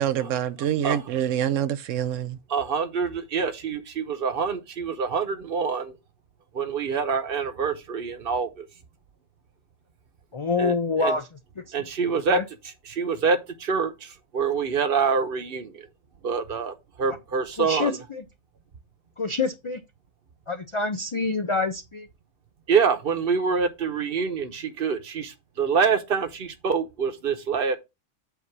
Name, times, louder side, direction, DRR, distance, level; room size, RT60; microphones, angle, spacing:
voice 1, 0.0-2.4, right 10 dB, 85° right, 1.0 m, -26 dB
voice 2, 2.5-5.9 6.5-8.7 10.6-10.7 11.0-11.2 11.7-12.4 12.9-15.9 16.2-18.0 22.7-27.8, right 5 dB, 50° right, 1.0 m, -26 dB
voice 3, 10.3-11.3 12.3-12.4 17.6-18.2 19.2-19.8 20.5-22.1, left 4 dB, 55° left, 0.3 m, -26 dB
8.1 x 2.7 x 5.9 m
omnidirectional pair, 1.3 m